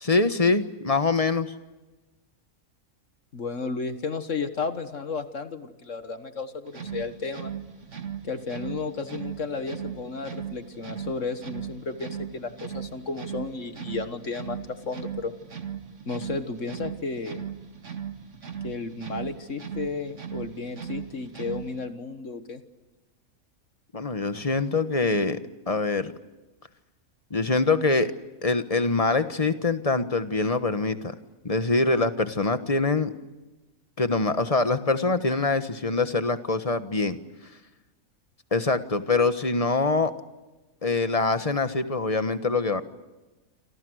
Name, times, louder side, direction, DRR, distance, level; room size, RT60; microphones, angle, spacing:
voice 1, 0.0-1.5 23.9-25.4 25.7-26.1 27.3-28.1 28.4-31.1 31.4-33.1 34.0-37.2 38.5-40.1 40.8-42.8, left 3 dB, 25° left, 10 dB, 1.3 m, -24 dB
voice 2, 3.3-7.5 8.2-15.3 16.1-17.5 18.6-22.6, left 4 dB, 60° left, 9 dB, 1.8 m, -33 dB
sound 1, 6.7-21.9, right 8 dB, 55° right, 2.3 m, -38 dB
28.0 x 27.5 x 6.5 m, 1.1 s
omnidirectional pair, 1.5 m